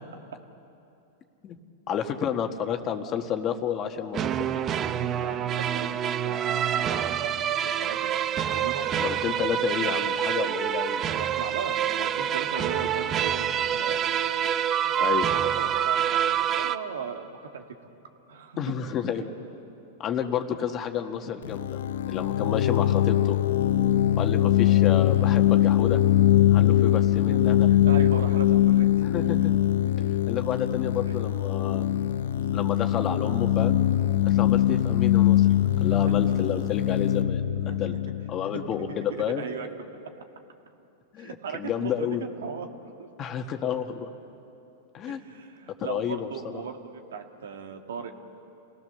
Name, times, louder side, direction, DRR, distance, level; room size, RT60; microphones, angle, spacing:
voice 1, 1.9-4.6 9.0-11.0 15.0-15.3 18.6-19.3 20.0-21.8 22.1-23.4 24.2-26.0 26.5-27.7 29.0-29.5 30.3-31.9 32.5-33.8 34.2-35.5 35.8-37.4 37.8-37.9 38.3-39.4 41.1-42.2 43.2-44.1 44.9-45.2 45.8-46.6, left 8 dB, 35° left, 5 dB, 1.7 m, -30 dB
sound 1, 4.1-16.8, right 9 dB, 30° right, 0.8 m, -27 dB
voice 2, 5.2-6.0 6.2-8.1 8.5-9.0 11.1-14.0 14.8-17.6 18.3-18.6 18.8-18.9 27.5-28.9 29.8-29.9 31.1-31.2 36.0-36.2 37.7-38.0 38.5-38.6 39.4-39.7 41.2-42.1 42.4-42.7 43.0-43.1 45.1-48.1, right 6 dB, 80° right, 4 dB, 2.0 m, -38 dB
sound 2, 21.4-39.0, left 12 dB, 75° left, 0.5 m, -22 dB
29.0 x 18.0 x 6.9 m, 2.8 s
hypercardioid pair, 115°, 0 cm